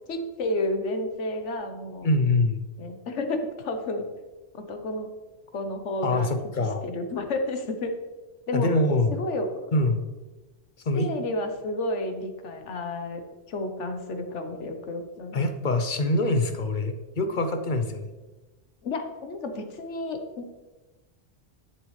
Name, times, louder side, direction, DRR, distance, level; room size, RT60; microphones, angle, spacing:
voice 1, 0.1-2.1 2.8-4.1 4.5-5.1 5.5-6.3 6.8-7.9 8.5-8.7 9.2-9.5 10.9-13.2 13.5-15.5 18.8-20.5, left 2 dB, 75° left, 6 dB, 1.3 m, -31 dB
voice 2, 2.0-2.6 6.0-6.8 8.5-9.2 9.7-10.0 10.9-11.1 15.3-18.1, left 2 dB, 45° left, 7 dB, 0.8 m, -24 dB
10.5 x 7.2 x 3.2 m, 1.2 s
omnidirectional pair, 1.2 m